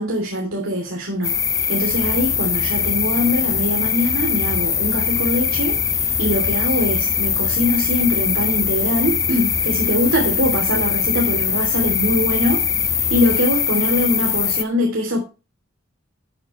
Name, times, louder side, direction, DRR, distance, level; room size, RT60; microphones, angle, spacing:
voice 1, 0.0-15.2, left 1 dB, 85° right, 3.0 m, -22 dB
sound 1, 1.2-14.6, left 8 dB, 15° left, 0.4 m, -21 dB
sound 2, 1.9-13.4, left 1 dB, 40° left, 1.1 m, -34 dB
13.0 x 7.8 x 3.2 m
head